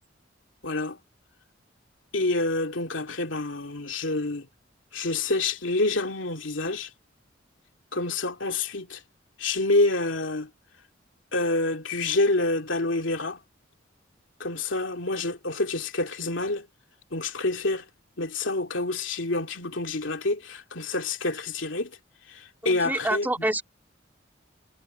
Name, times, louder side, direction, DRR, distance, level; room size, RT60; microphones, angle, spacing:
voice 1, 0.6-1.0 2.1-4.5 4.9-6.9 7.9-9.0 9.4-10.5 11.3-13.4 14.4-16.7 17.1-17.9 18.2-22.0 22.3-23.5, left 2 dB, 75° left, 2.5 m, -27 dB
voice 2, 22.6-23.6, right 1 dB, 10° right, 2.4 m, -27 dB
head